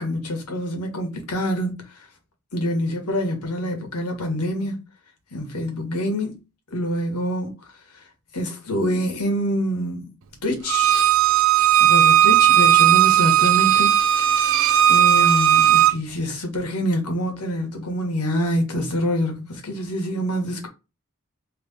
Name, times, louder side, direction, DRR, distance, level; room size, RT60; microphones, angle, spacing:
voice 1, 0.0-1.8 2.5-4.8 5.3-6.3 6.7-7.6 8.3-10.1 10.4-11.1 11.8-13.9 14.9-20.7, equal, 90° left, 1.6 m, -26 dB
Bowed string instrument, 10.7-15.9, right 11 dB, 60° right, 0.4 m, -16 dB
3.4 x 3.2 x 4.1 m
head